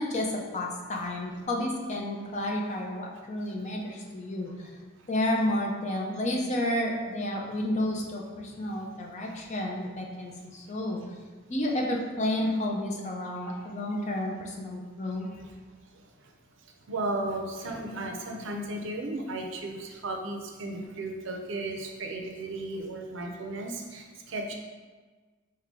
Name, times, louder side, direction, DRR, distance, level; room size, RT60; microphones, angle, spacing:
voice 1, 0.0-4.7 5.1-11.0 11.5-15.3, left 1 dB, 35° left, 0 dB, 0.6 m, -31 dB
voice 2, 16.6-24.5, right 2 dB, 65° right, 2 dB, 0.6 m, -35 dB
4.9 x 2.2 x 3.7 m, 1.4 s
head